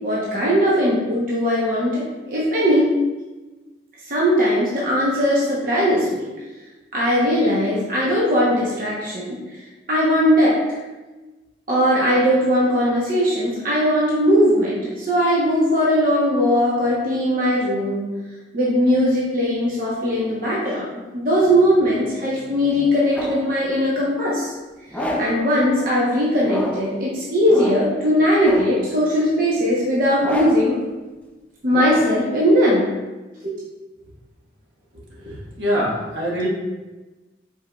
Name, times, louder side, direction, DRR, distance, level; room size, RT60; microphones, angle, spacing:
voice 1, 0.0-2.9 4.1-6.3 6.9-10.8 11.7-18.1 18.5-24.5 24.9-30.8 31.6-32.9 33.4-33.5, equal, 50° right, -6 dB, 0.8 m, -19 dB
sound 1, 21.5-23.5 24.9-25.5 26.4-27.0 27.5-28.0 28.4-28.9 30.2-30.8 31.7-32.3, equal, 10° left, 0.4 m, -29 dB
voice 2, 35.2-36.5, equal, 80° right, -5 dB, 1.3 m, -24 dB
4.8 x 4.6 x 2.2 m, 1.2 s
head